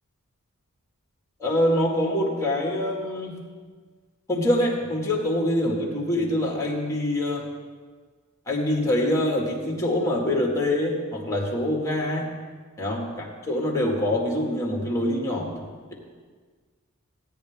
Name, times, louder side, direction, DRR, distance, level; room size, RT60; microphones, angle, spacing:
voice 1, 1.4-3.4 4.3-7.5 8.5-12.3 12.8-15.6, left 1 dB, 15° left, -1 dB, 1.9 m, -25 dB
16.5 x 9.8 x 3.6 m, 1.5 s
head